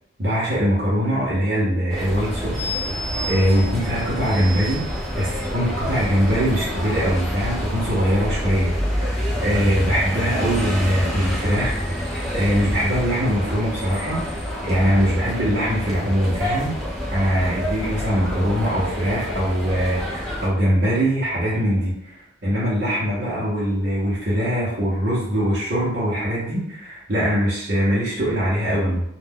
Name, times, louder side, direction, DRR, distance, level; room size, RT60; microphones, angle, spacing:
voice 1, 0.2-2.7 3.3-4.8 5.2-14.2 14.6-16.7 17.1-29.0, equal, 55° right, -9 dB, 0.8 m, -22 dB
sound 1, 1.9-20.5, equal, ahead, 0.6 m, -27 dB
2.4 x 2.2 x 3.5 m, 0.77 s
head